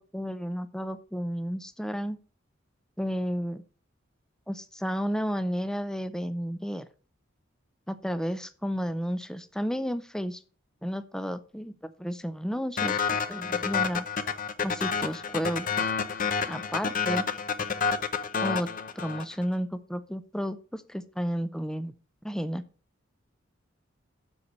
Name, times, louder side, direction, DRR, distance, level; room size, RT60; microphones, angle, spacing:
voice 1, 0.0-2.2 3.0-3.6 4.5-6.9 7.9-10.4 10.8-14.1 14.6-15.7 16.5-17.3 18.4-18.7 19.0-21.9 22.2-22.6, equal, 5° left, 12 dB, 0.4 m, -32 dB
sound 1, 12.8-19.4, left 6 dB, 40° left, 0.7 m, -29 dB
7.1 x 6.5 x 5.3 m, 0.38 s
head